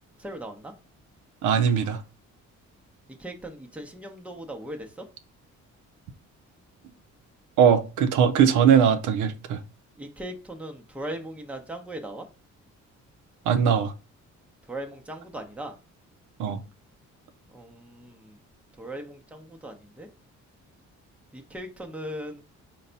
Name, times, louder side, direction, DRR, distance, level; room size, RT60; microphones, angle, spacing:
voice 1, 0.2-0.7 3.2-5.0 10.0-12.3 14.6-15.8 17.5-18.4 18.8-20.1 21.3-22.4, right 1 dB, 5° right, 0.7 m, -38 dB
voice 2, 1.4-2.0 7.6-9.6 13.5-13.9 16.4-16.6, right 7 dB, 80° right, 0.6 m, -20 dB
4.0 x 2.2 x 3.9 m
cardioid pair, 90°, 30 cm